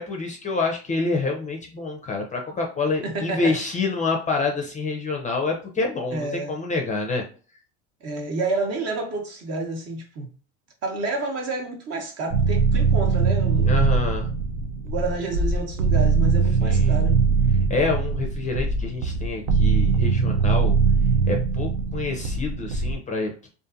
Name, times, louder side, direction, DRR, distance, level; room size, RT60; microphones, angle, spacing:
voice 1, 0.0-7.2 13.7-14.3 16.6-17.0 17.7-20.7 21.3-23.5, left 3 dB, 20° left, 0.5 m, -27 dB
voice 2, 3.0-3.6 6.1-6.6 8.0-10.3 10.8-13.9 14.8-17.2, right 3 dB, 45° right, 0.9 m, -29 dB
sound 1, 12.3-22.9, right 5 dB, 65° right, 0.5 m, -21 dB
2.5 x 2.5 x 2.4 m
supercardioid pair, 105°, 35 cm